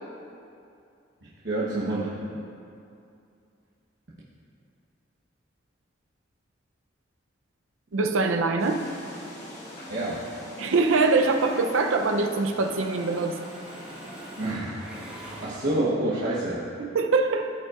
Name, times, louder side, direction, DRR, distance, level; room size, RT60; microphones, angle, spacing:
voice 1, 1.4-2.2 9.9-10.2 14.4-14.8 15.4-16.6, right 1 dB, 60° right, -8 dB, 1.0 m, -27 dB
voice 2, 7.9-8.8 10.6-13.4 16.8-17.5, right 3 dB, 85° right, 5 dB, 0.6 m, -23 dB
sound 1, 8.6-15.7, equal, 35° left, 1.6 m, -44 dB
Mechanisms, 11.3-12.2 12.5-16.1, right 1 dB, 5° right, 1.0 m, -44 dB
14.5 x 5.4 x 2.4 m, 2.5 s
head